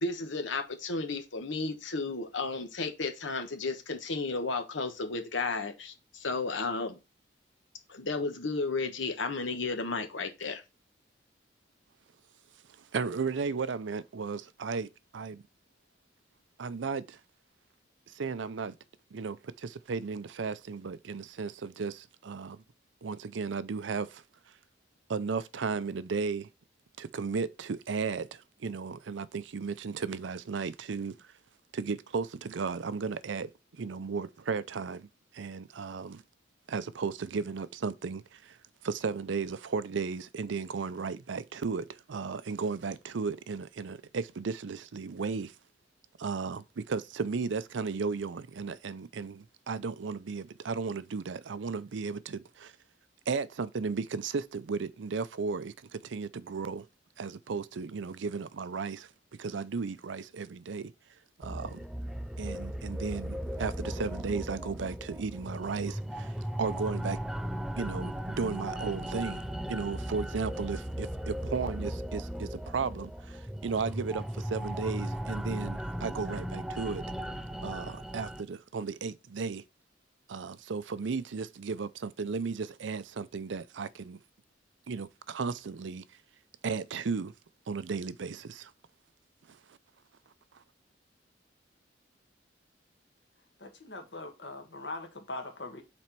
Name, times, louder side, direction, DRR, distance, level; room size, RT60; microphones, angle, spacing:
voice 1, 0.0-7.0 7.9-10.6, left 3 dB, 85° left, 1.1 m, -33 dB
voice 2, 12.8-15.4 16.6-17.2 18.1-18.8 19.1-22.6 23.0-24.2 25.1-26.5 27.0-31.3 31.7-35.1 35.3-36.2 36.7-38.6 38.8-45.6 46.2-52.7 53.3-56.9 57.2-59.1 59.4-60.9 61.4-61.8 62.4-67.2 67.8-69.4 69.7-77.0 77.6-79.6 80.3-84.2 84.9-86.2 86.6-87.3 87.7-88.7 89.5-89.8 90.5-90.6, right 5 dB, 80° right, 0.5 m, -35 dB
sound 1, 61.4-78.4, equal, ahead, 0.4 m, -37 dB
voice 3, 93.6-95.8, left 2 dB, 65° left, 1.6 m, -41 dB
5.9 x 4.3 x 4.5 m
head